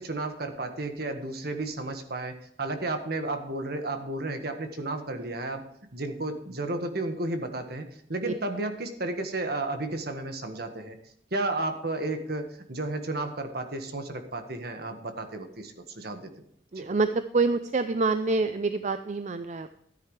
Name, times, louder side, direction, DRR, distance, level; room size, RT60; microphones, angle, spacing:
voice 1, 0.0-5.6 5.9-11.0 11.3-16.3 16.7-16.9, right 2 dB, 60° right, 6 dB, 1.6 m, -33 dB
voice 2, 16.7-19.7, right 3 dB, 40° right, 10 dB, 0.5 m, -26 dB
13.5 x 9.4 x 3.3 m, 0.71 s
head